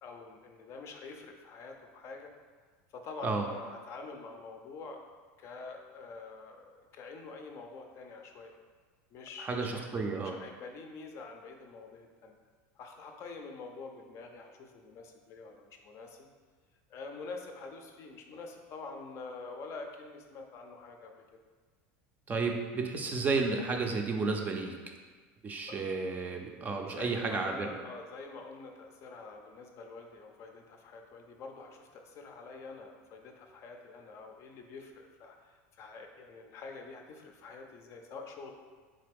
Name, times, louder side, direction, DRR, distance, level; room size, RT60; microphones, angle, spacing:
voice 1, 0.0-2.3 2.9-5.0 5.4-8.5 9.1-12.4 12.8-16.3 16.9-21.2 25.7-25.8 26.2-26.3 26.8-38.5, left 4 dB, 45° left, 3 dB, 0.5 m, -46 dB
voice 2, 9.4-10.4 22.3-24.8 25.4-27.8, right 4 dB, 25° right, 3 dB, 0.4 m, -32 dB
3.8 x 3.2 x 3.5 m, 1.5 s
supercardioid pair, 120°, 7 cm